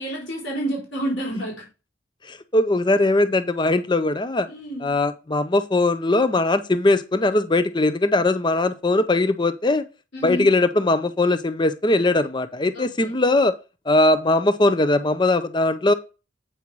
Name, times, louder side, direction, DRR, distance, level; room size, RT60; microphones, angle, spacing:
voice 1, 0.0-1.7 4.5-4.9 10.1-10.5 12.7-13.1, right 1 dB, 90° left, 4.2 m, -29 dB
voice 2, 2.3-4.5 4.8-9.8 10.2-13.5 13.9-15.9, left 2 dB, 25° left, 0.6 m, -20 dB
8.5 x 5.6 x 4.6 m
head